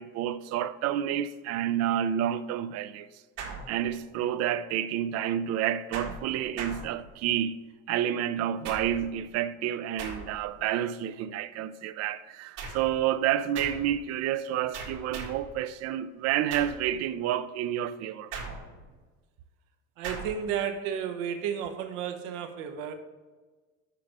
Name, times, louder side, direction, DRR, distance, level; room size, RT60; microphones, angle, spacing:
voice 1, 0.0-3.1 3.7-7.6 7.9-18.3, right 10 dB, 45° right, 0.4 m, -29 dB
sound 1, 3.4-4.2 5.9-7.4 8.6-9.2 10.0-10.6 12.6-13.0 13.6-14.0 14.7-15.5 16.5-16.9 18.3-19.0 20.0-20.5, right 4 dB, 65° right, 1.8 m, -40 dB
voice 2, 20.0-22.9, right 8 dB, 80° right, 1.0 m, -32 dB
6.7 x 5.0 x 5.9 m
supercardioid pair, 125°, 38 cm